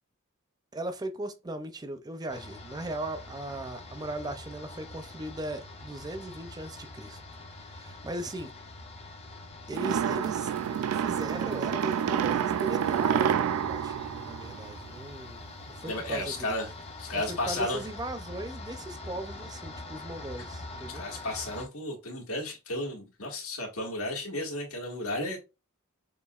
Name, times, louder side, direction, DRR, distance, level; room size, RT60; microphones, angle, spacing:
voice 1, 0.7-7.2 7.6-8.5 9.7-10.5 10.9-15.4 15.7-16.6 17.1-21.1, right 1 dB, 20° right, 0.4 m, -38 dB
sound 1, 2.3-21.7, left 2 dB, 30° left, 0.8 m, -44 dB
sound 2, 9.7-15.1, right 8 dB, 80° right, 0.3 m, -28 dB
voice 2, 15.9-16.7 17.0-17.9 20.9-25.4, left 1 dB, 90° left, 1.8 m, -33 dB
6.8 x 2.6 x 2.4 m
head